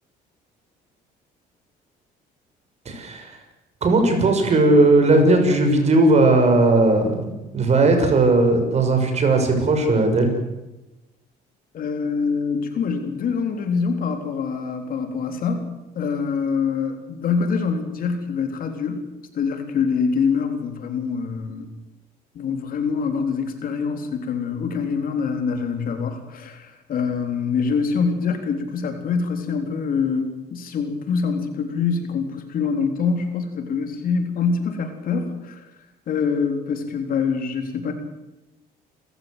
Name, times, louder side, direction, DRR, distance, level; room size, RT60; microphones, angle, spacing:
voice 1, 2.9-3.4 3.8-10.3, right 2 dB, 40° right, 5 dB, 6.2 m, -17 dB
voice 2, 11.7-19.1 19.3-21.7 22.4-35.7 36.1-37.9, left 5 dB, 55° left, 6 dB, 3.8 m, -25 dB
28.0 x 15.0 x 8.2 m, 1.0 s
cardioid pair, 110°, 17 cm